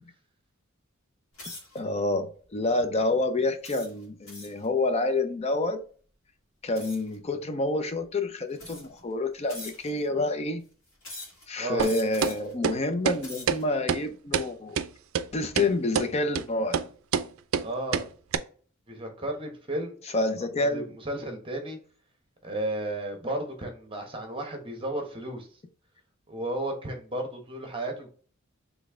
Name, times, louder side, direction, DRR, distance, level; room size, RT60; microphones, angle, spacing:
sound 1, 1.3-1.8 2.4-2.7 3.6-4.7 6.7-7.1 8.0-8.1 8.5-9.0 9.5-10.1 11.0-11.4 11.8-12.5 13.0-13.6, left 2 dB, 65° left, 2.1 m, -43 dB
voice 1, 1.7-5.8 6.6-10.6 11.5-14.8 15.3-16.8 20.1-20.9, left 2 dB, 30° left, 0.5 m, -28 dB
voice 2, 11.6-11.9 17.6-18.1 18.9-19.9 20.6-21.8 22.4-25.5 26.3-28.1, right 1 dB, 25° right, 1.1 m, -33 dB
sound 2, 11.8-11.9 12.2-12.3 12.6-12.8 13.1-13.2 13.5-13.6 13.9-14.0 14.3-14.5 14.8-14.9 15.1-15.2 15.6-15.7 15.9-16.1 16.4-16.5 16.7-16.9 17.1-17.3 17.5-17.7 17.9-18.1 18.3-18.4, right 7 dB, 70° right, 0.4 m, -26 dB
4.1 x 3.4 x 3.6 m
head